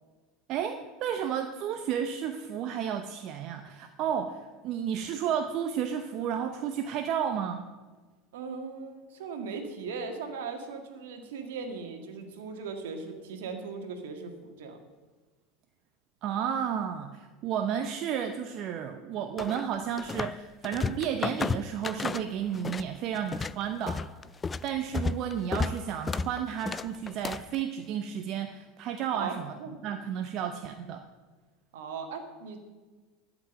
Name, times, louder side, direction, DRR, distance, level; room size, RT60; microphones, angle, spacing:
voice 1, 0.5-7.7 16.2-24.0 24.6-29.5 29.8-31.0, right 8 dB, 50° right, 6 dB, 0.8 m, -32 dB
voice 2, 8.3-14.8 29.1-30.0 31.7-32.6, right 5 dB, 70° right, 5 dB, 1.8 m, -38 dB
sound 1, 19.4-20.4 20.6-22.9 23.2-27.6, left 4 dB, 25° left, 0.3 m, -32 dB
12.0 x 6.1 x 8.8 m, 1.3 s
hypercardioid pair, 80°, 0 cm